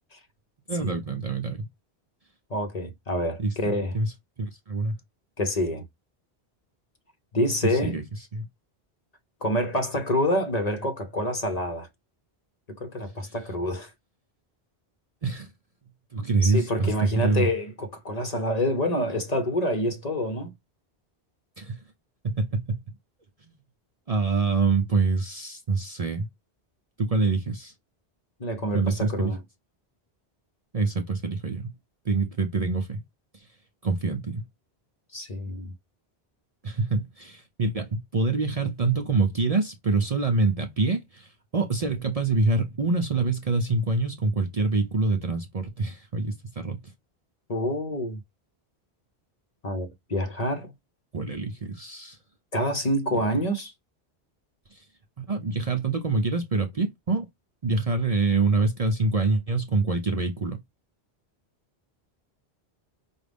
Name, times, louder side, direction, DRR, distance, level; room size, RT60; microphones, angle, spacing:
voice 1, 0.7-1.7 3.4-4.1 4.4-4.9 7.6-8.0 8.3-8.5 15.2-15.5 16.1-17.5 21.6-21.8 22.2-22.8 23.4-23.5 24.1-26.3 27.0-27.7 28.7-29.3 30.7-31.7 32.1-33.0 33.8-34.4 36.6-46.8 51.1-52.2 54.7-54.8 55.2-57.3 57.6-60.6, right 3 dB, 45° right, 0.6 m, -26 dB
voice 2, 2.5-3.9 5.4-5.8 7.3-8.0 9.4-11.9 12.7-13.9 16.4-20.5 28.4-29.4 35.1-35.7 47.5-48.2 49.6-50.7 52.5-53.7, left 1 dB, 40° left, 0.8 m, -27 dB
5.0 x 2.4 x 3.3 m
omnidirectional pair, 1.1 m